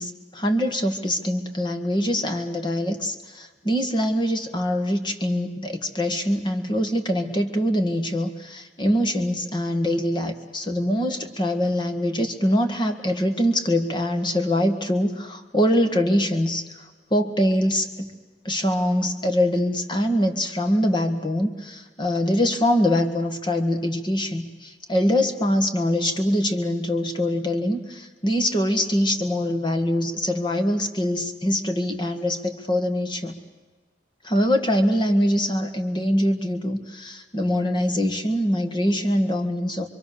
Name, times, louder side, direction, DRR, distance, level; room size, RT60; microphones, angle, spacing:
voice 1, 0.0-18.1 18.5-33.4 34.2-39.9, equal, 25° left, 6 dB, 1.8 m, -23 dB
26.5 x 24.0 x 6.9 m, 1.3 s
head